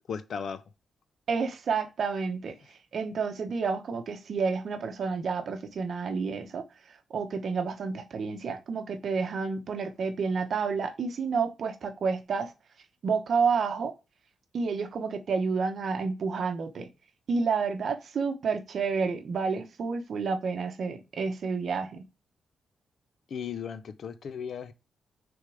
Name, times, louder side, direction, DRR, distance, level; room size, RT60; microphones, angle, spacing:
voice 1, 0.1-0.6 23.3-24.7, left 7 dB, 55° left, 0.6 m, -36 dB
voice 2, 1.3-6.6 7.1-12.5 13.0-13.9 14.5-16.9 17.3-22.0, right 5 dB, 50° right, 0.9 m, -30 dB
6.5 x 3.5 x 4.9 m
wide cardioid pair, 155°, 0 cm